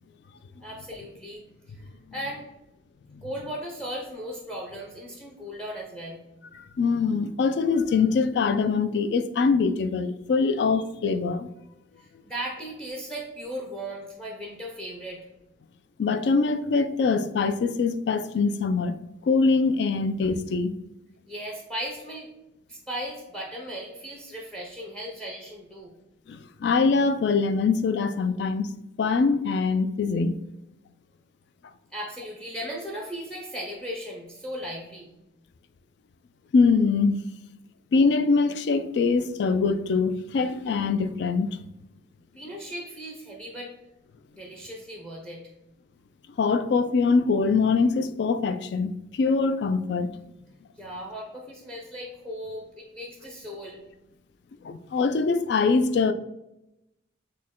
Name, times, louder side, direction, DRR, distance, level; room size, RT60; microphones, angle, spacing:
voice 1, 0.6-1.4 2.1-2.5 3.2-6.2 12.0-15.2 21.3-22.3 22.7-25.9 31.9-35.1 42.3-43.7 44.3-45.4 50.8-53.8, equal, 5° left, 0.6 m, -37 dB
voice 2, 6.8-11.5 16.0-19.0 19.2-20.7 26.3-30.4 36.5-37.2 37.9-41.5 46.4-50.1 54.6-56.1, left 4 dB, 60° left, 0.3 m, -23 dB
6.4 x 2.1 x 3.6 m
head